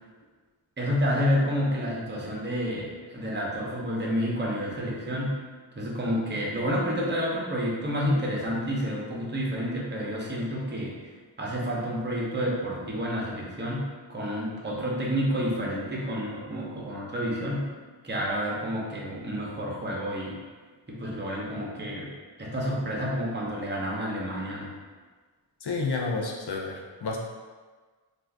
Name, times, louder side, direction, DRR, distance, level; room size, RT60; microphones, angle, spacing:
voice 1, 0.8-5.4 5.8-10.9 11.4-17.7 18.0-20.4 20.9-22.1 22.4-24.7, equal, 25° right, -4 dB, 0.7 m, -29 dB
voice 2, 25.6-27.2, left 3 dB, 60° left, -1 dB, 0.6 m, -30 dB
2.5 x 2.4 x 3.3 m, 1.4 s
wide cardioid pair, 45°, 45 cm